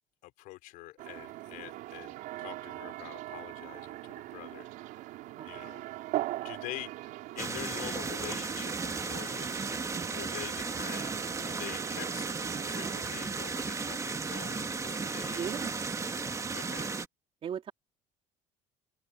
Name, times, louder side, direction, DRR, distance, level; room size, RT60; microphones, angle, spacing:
voice 1, 0.2-4.7 5.4-5.8 6.4-9.6 10.1-11.1 11.4-12.3 12.6-15.5 16.5-16.9, left 20 dB, 75° left, 4.9 m, -45 dB
sound 1, 1.0-13.1, right 17 dB, 70° right, 4.5 m, -41 dB
voice 2, 5.4-5.7 15.3-15.8 17.4-17.7, right 8 dB, 40° right, 3.3 m, -38 dB
sound 2, 7.4-17.1, right 4 dB, 20° right, 1.6 m, -35 dB
open air
cardioid pair, 105°, 14 cm